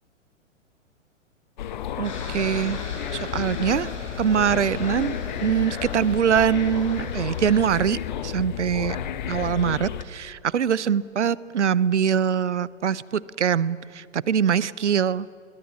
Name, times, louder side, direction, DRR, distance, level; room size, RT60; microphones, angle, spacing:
sound 1, 1.6-10.0, left 9 dB, 35° left, 1.1 m, -32 dB
sound 2, 2.0-7.8, left 2 dB, 65° left, 6.3 m, -39 dB
voice 1, 2.0-2.8 3.1-3.9 4.2-9.0 9.3-15.3, right 8 dB, 65° right, 21 dB, 0.7 m, -23 dB
23.0 x 21.0 x 7.4 m, 2.4 s
figure-of-eight pair, 120°, 38 cm